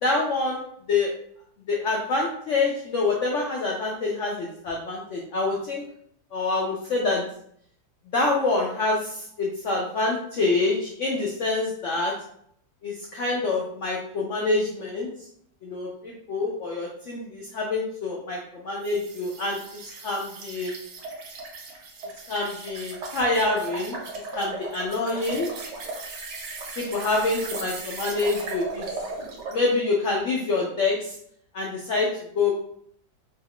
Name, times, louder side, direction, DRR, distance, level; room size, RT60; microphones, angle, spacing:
voice 1, 0.0-0.6 0.9-1.1 1.7-5.8 6.3-7.2 8.1-12.1 12.8-15.1 15.6-18.4 18.6-19.6 20.0-20.7 22.3-24.0 24.3-25.5 26.8-28.9 29.5-31.1 31.5-32.1 32.3-32.5, left 3 dB, 85° left, -2 dB, 0.6 m, -26 dB
sound 1, 18.8-29.6, right 3 dB, 75° right, 1.3 m, -37 dB
3.1 x 2.3 x 3.4 m, 0.67 s
omnidirectional pair, 1.9 m